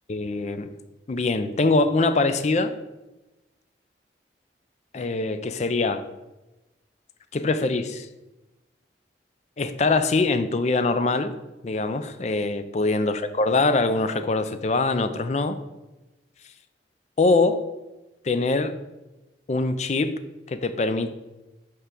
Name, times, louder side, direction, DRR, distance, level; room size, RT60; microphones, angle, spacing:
voice 1, 0.1-0.7 1.1-2.7 4.9-6.0 7.3-8.1 9.6-11.3 11.6-15.6 17.2-17.6 18.2-18.7 19.5-20.1 20.5-21.1, left 3 dB, 40° left, 11 dB, 0.4 m, -23 dB
5.7 x 3.6 x 6.0 m, 1.0 s
head